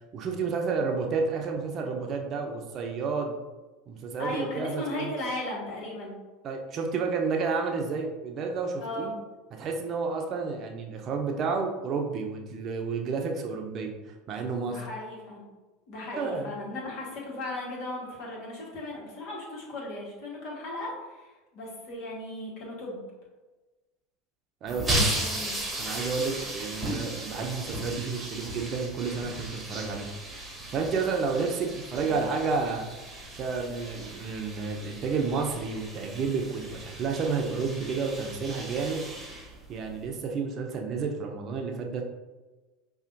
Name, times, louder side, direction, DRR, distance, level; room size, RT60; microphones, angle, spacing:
voice 1, 0.1-3.4 3.9-5.1 6.4-9.1 9.6-13.9 14.3-14.8 16.2-16.5 24.6-25.1 25.8-30.1 30.7-32.9 33.3-39.0 39.7-42.0, right 4 dB, 45° right, 2 dB, 0.6 m, -30 dB
voice 2, 4.2-6.2 8.8-9.1 14.6-15.4 15.9-23.0 25.0-25.5 32.1-32.3, left 1 dB, 60° left, -3 dB, 1.4 m, -36 dB
sound 1, 24.7-40.1, right 1 dB, 10° right, 1.1 m, -36 dB
5.4 x 2.4 x 2.5 m, 1.2 s
hypercardioid pair, 85°, 0 cm